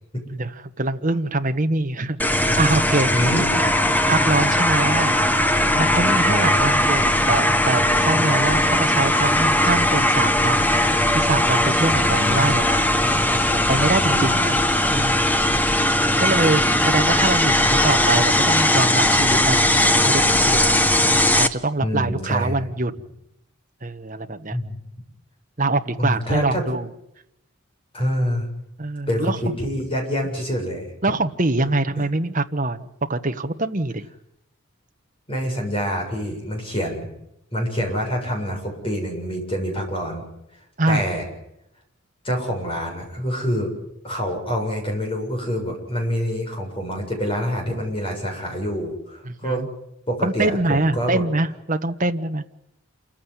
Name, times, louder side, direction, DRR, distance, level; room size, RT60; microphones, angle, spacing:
voice 1, 0.3-3.1 4.1-5.2 5.7-12.8 13.5-14.6 14.9-15.3 16.2-21.1 21.4-22.9 23.8-24.6 25.6-26.9 28.8-29.4 31.0-34.1 40.8-41.1 49.2-49.7 50.2-52.4, right 2 dB, 35° right, 6 dB, 1.2 m, -24 dB
sound 1, 2.2-21.5, left 1 dB, 10° left, 1.0 m, -19 dB
voice 2, 3.1-3.5 6.3-6.6 11.9-12.6 14.0-14.6 16.0-16.1 21.8-22.6 24.5-24.8 26.0-26.6 27.9-28.5 29.1-30.9 32.0-32.1 35.3-37.1 37.5-40.2 40.9-41.3 42.2-43.7 44.0-49.6 50.1-51.2, equal, 25° left, 2 dB, 7.2 m, -26 dB
28.0 x 15.0 x 9.8 m, 0.83 s
head